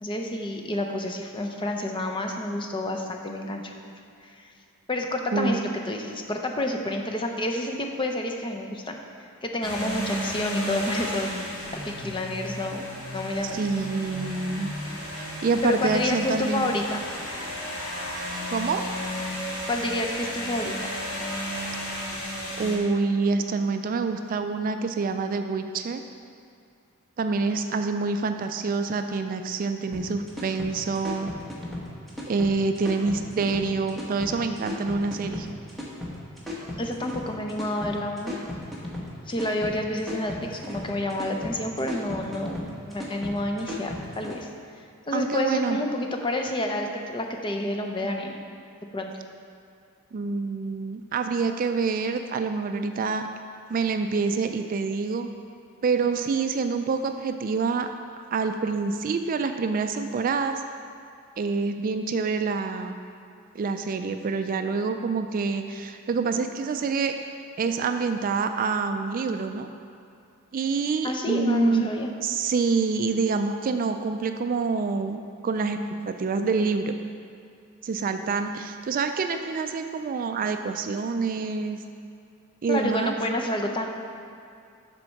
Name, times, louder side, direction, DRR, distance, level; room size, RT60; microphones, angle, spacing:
voice 1, 0.0-3.9 4.2-4.5 4.9-9.0 9.4-13.6 15.6-17.0 19.7-20.7 36.8-38.4 39.3-44.5 45.1-48.4 48.9-49.1 71.0-72.1 82.7-83.9, left 1 dB, 25° left, 3 dB, 0.6 m, -29 dB
voice 2, 5.3-5.7 13.4-14.7 15.1-16.7 18.5-18.8 22.6-26.0 27.2-31.3 32.3-35.5 45.1-45.8 50.1-53.3 53.7-55.3 55.8-57.9 58.3-60.6 61.4-63.0 63.6-67.1 67.6-69.7 70.5-71.9 72.2-75.8 76.1-76.9 77.8-81.8 82.6-83.2, right 4 dB, 40° right, 7 dB, 0.3 m, -26 dB
sound 1, 9.6-22.8, equal, 80° left, 1.8 m, -33 dB
sound 2, 29.9-44.4, left 1 dB, ahead, 1.1 m, -36 dB
7.5 x 4.3 x 6.4 m, 2.5 s
head